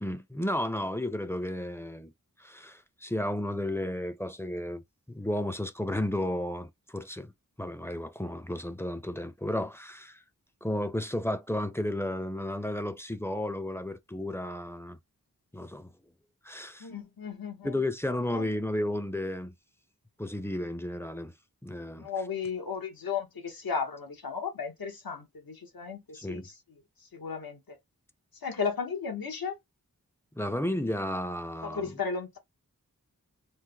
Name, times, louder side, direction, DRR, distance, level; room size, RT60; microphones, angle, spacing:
voice 1, 0.0-2.1 2.4-4.8 5.1-7.3 7.6-10.2 10.6-15.0 15.5-15.9 16.4-16.9 17.6-19.5 20.2-21.3 21.6-22.1 26.1-26.4 30.4-32.0, left 1 dB, 5° left, 0.5 m, -33 dB
voice 2, 16.8-17.7 18.3-18.5 22.0-26.4 27.1-27.8 28.4-29.6 31.6-32.4, left 6 dB, 80° left, 1.0 m, -34 dB
3.2 x 2.0 x 3.4 m
wide cardioid pair, 40°, 35 cm